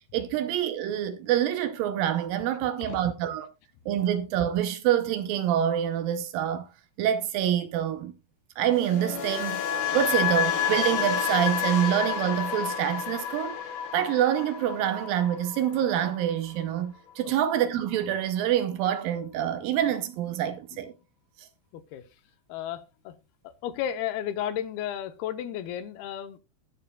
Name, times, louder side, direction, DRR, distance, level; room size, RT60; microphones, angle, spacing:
voice 1, 0.1-3.5 3.9-6.7 7.0-8.1 8.6-13.6 13.9-20.9, right 10 dB, 75° right, 2.4 m, -26 dB
voice 2, 2.6-3.0 3.8-3.9 17.2-17.3 20.7-20.8 21.7-22.1 22.5-23.2 23.4-26.4, left 10 dB, 85° left, 2.8 m, -34 dB
sound 1, 8.7-16.8 17.1-17.4, left 8 dB, 70° left, 3.2 m, -30 dB
20.0 x 6.8 x 2.3 m
omnidirectional pair, 4.5 m